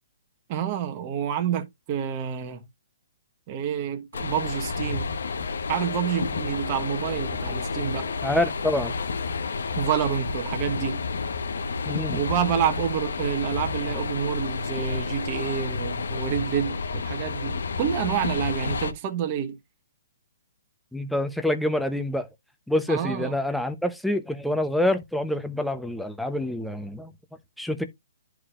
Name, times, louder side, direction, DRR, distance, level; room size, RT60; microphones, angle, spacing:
voice 1, 0.5-2.6 3.5-5.1 5.7-8.1 9.8-11.0 12.1-19.6 22.9-23.3, right 9 dB, 30° right, 1.2 m, -28 dB
sound 1, 4.1-18.9, left 4 dB, 80° left, 0.9 m, -30 dB
voice 2, 8.2-8.9 11.9-12.2 20.9-22.3 22.7-27.1 27.6-27.8, left 1 dB, ahead, 0.8 m, -26 dB
11.0 x 4.8 x 2.5 m
hypercardioid pair, 155°, 0 cm